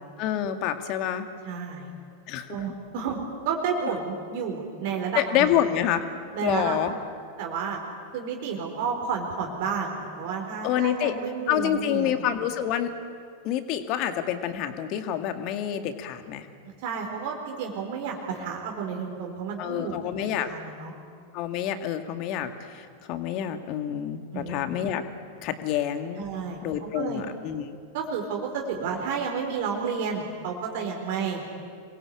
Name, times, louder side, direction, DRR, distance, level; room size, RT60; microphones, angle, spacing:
voice 1, 0.2-1.3 2.3-2.6 5.2-6.1 6.4-6.9 10.6-11.1 11.5-12.9 13.4-16.5 19.6-20.5 21.3-25.0 25.4-26.2 26.6-27.8, left 10 dB, 40° left, 8 dB, 2.1 m, -27 dB
voice 2, 1.4-1.9 2.5-3.2 3.4-5.6 6.3-7.0 7.4-7.8 8.1-12.2 16.6-20.9 24.3-24.6 26.2-27.2 27.9-31.6, right 6 dB, 50° right, 1 dB, 4.3 m, -31 dB
27.5 x 22.0 x 8.7 m, 2.3 s
figure-of-eight pair, 90°, 0 cm